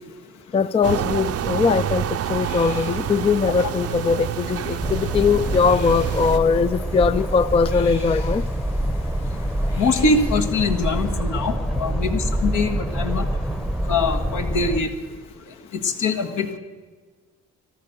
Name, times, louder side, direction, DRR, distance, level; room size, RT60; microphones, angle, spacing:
voice 1, 0.5-8.4, left 5 dB, 20° left, 15 dB, 0.3 m, -21 dB
sound 1, 0.8-6.4, right 10 dB, 55° right, 0.6 m, -28 dB
sound 2, 2.1-11.1, left 2 dB, 90° left, 3.7 m, -43 dB
sound 3, 4.8-14.8, right 1 dB, ahead, 0.8 m, -26 dB
voice 2, 9.8-13.2 13.9-14.9 15.8-16.6, left 3 dB, 75° left, 4 dB, 1.6 m, -23 dB
13.5 x 12.5 x 6.9 m, 1.5 s
cardioid pair, 90°, 30 cm